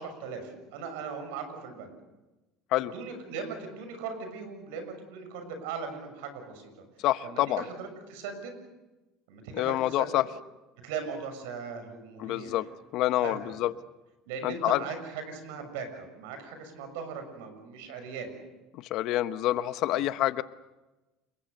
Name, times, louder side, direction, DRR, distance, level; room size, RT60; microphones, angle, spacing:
voice 1, 0.0-1.9 2.8-6.7 7.2-8.5 9.3-10.1 10.8-12.6 13.1-13.4 14.3-18.3 19.9-20.0, right 5 dB, 85° right, 7 dB, 6.7 m, -39 dB
voice 2, 7.0-7.6 9.6-10.2 12.2-12.7 12.9-13.7 14.4-14.8 18.7-20.4, left 15 dB, 60° left, 13 dB, 1.0 m, -27 dB
30.0 x 21.5 x 6.8 m, 1.1 s
supercardioid pair, 120°, 0 cm